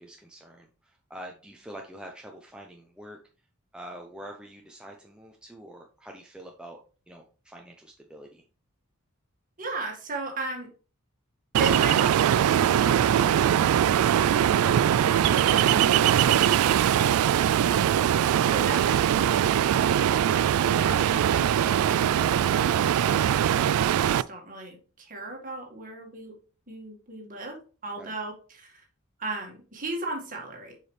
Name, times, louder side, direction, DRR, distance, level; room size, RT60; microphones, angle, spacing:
voice 1, 0.0-3.2 3.7-6.8 7.1-8.4 28.0-28.1, right 1 dB, 5° right, 1 dB, 0.6 m, -45 dB
voice 2, 9.6-10.7 11.6-13.7 18.5-26.3 26.7-27.6 27.8-28.8 29.2-30.8, right 2 dB, 40° right, 1 dB, 1.8 m, -37 dB
Ocean, 11.5-24.2, right 10 dB, 90° right, 0.3 m, -22 dB
6.9 x 5.0 x 3.2 m, 0.36 s
head